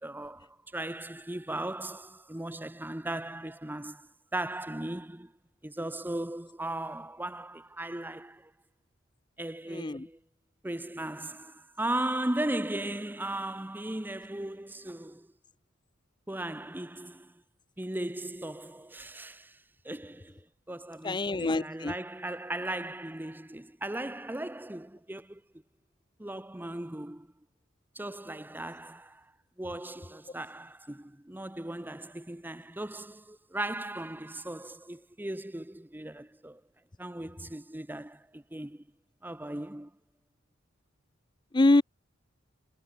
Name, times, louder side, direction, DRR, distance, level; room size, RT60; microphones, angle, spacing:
voice 1, 0.0-5.3 5.6-8.5 9.4-10.2 10.6-15.3 16.3-17.3 17.8-25.4 26.2-27.3 27.9-29.3 29.6-36.6 37.0-38.8 39.2-39.9, right 1 dB, 10° right, 0.8 m, -37 dB
voice 2, 21.0-21.9 41.5-41.8, left 2 dB, 20° left, 0.5 m, -24 dB
head